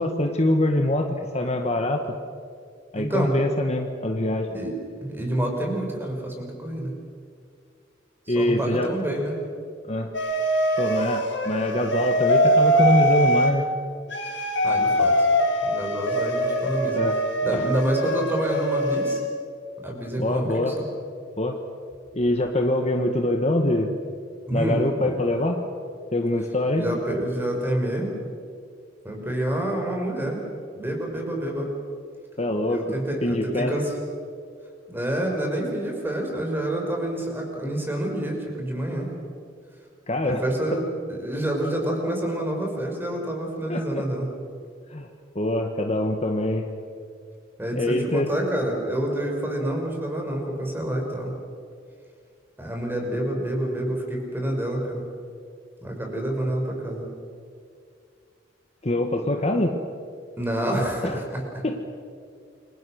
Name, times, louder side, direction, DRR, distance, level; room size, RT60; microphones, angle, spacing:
voice 1, 0.0-2.1 2.9-4.5 8.3-8.9 9.9-10.1 10.8-13.6 16.9-17.2 17.5-17.6 20.2-20.8 21.4-21.6 22.1-23.9 24.5-25.6 26.1-26.9 32.4-33.0 33.2-33.7 40.1-40.4 40.7-40.8 43.7-44.0 44.9-45.1 45.3-46.7 47.7-48.3 58.8-59.8 61.0-61.2 61.6-61.8, left 1 dB, 35° left, 4 dB, 1.7 m, -24 dB
voice 2, 3.0-3.4 4.5-4.7 5.0-6.9 8.3-9.4 14.3-15.3 15.6-17.0 17.4-19.2 19.8-20.9 24.5-24.8 26.8-28.1 29.0-30.4 30.8-31.7 32.7-33.9 34.9-39.1 40.2-40.8 41.1-44.3 47.6-51.3 52.6-55.0 55.8-57.1 60.4-61.6, right 1 dB, 10° right, 0 dB, 5.9 m, -28 dB
sound 1, 10.1-13.5 14.1-19.2, equal, 70° left, 5.8 m, -22 dB
28.5 x 24.5 x 6.6 m, 2.2 s
head